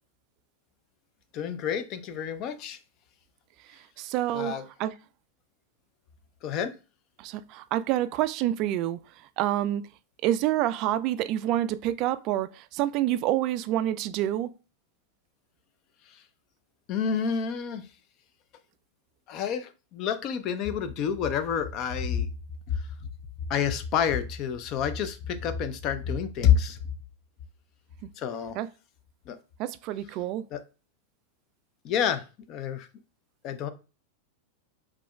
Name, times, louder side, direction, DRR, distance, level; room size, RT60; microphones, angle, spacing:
voice 1, 1.3-2.8 4.3-4.6 6.4-6.7 16.1-16.2 16.9-17.9 19.3-22.3 22.7-22.8 23.5-26.8 28.2-28.6 29.3-29.4 30.5-30.6 31.8-32.2 32.5-32.9 33.4-33.7, left 8 dB, 40° left, 0.5 m, -28 dB
voice 2, 4.0-4.9 7.2-9.0 9.4-9.8 10.2-14.5 28.6-28.7 29.6-30.4, right 13 dB, 40° right, 0.3 m, -27 dB
4.8 x 3.6 x 2.3 m
figure-of-eight pair, 90°, 0 cm